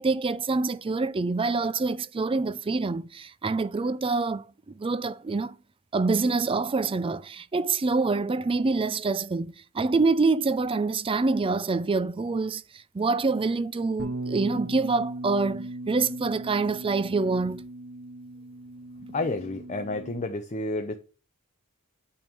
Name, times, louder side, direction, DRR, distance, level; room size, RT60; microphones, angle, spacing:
voice 1, 0.0-5.6 5.9-17.6, right 3 dB, 25° right, 0.4 m, -26 dB
Bass guitar, 14.0-20.2, right 2 dB, 60° right, 1.5 m, -38 dB
voice 2, 19.0-21.0, left 2 dB, 35° left, 0.6 m, -30 dB
9.0 x 3.6 x 6.9 m
head